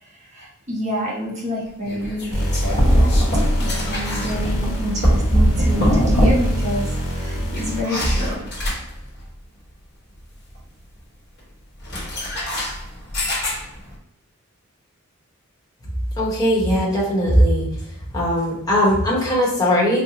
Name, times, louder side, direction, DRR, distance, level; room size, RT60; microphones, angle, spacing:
voice 1, 0.0-2.7 3.5-8.5, equal, 35° right, -6 dB, 1.1 m, -28 dB
sound 1, 1.8-6.7 6.9-9.2 11.8-13.9, equal, 50° left, 1.1 m, -21 dB
sound 2, 2.3-8.1, equal, 85° left, 1.1 m, -27 dB
voice 2, 16.2-17.7 18.1-20.0, equal, 15° left, -6 dB, 1.0 m, -19 dB
4.0 x 2.1 x 2.8 m, 0.75 s
head